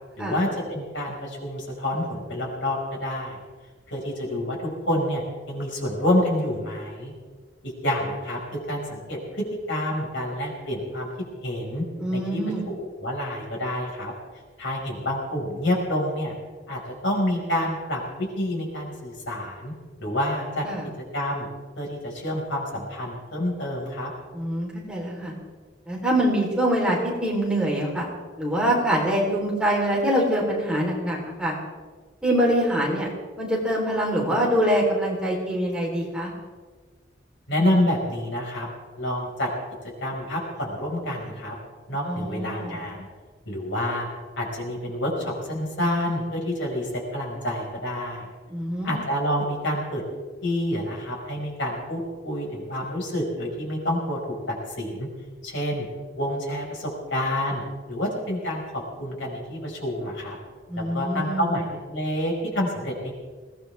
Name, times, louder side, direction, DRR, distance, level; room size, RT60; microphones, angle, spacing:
voice 1, 0.2-3.4 3.9-4.6 4.9-7.1 7.6-8.4 8.7-11.1 11.4-11.8 12.1-14.1 14.6-16.3 16.7-19.7 20.0-20.7 21.1-21.5 21.8-24.1 37.5-38.7 39.0-39.5 40.0-41.6 41.9-43.1 43.5-44.1 44.4-48.3 48.8-50.0 50.4-54.2 54.5-55.1 55.4-55.9 56.2-57.6 57.9-60.4 60.8-63.1, left 1 dB, 85° left, -1 dB, 5.3 m, -28 dB
voice 2, 12.0-12.7 20.6-20.9 24.3-25.3 25.9-28.1 28.4-31.6 32.2-33.1 33.4-36.3 42.0-42.8 48.5-48.9 60.7-61.6, equal, 5° right, -3 dB, 3.7 m, -24 dB
22.0 x 18.0 x 3.5 m, 1.4 s
head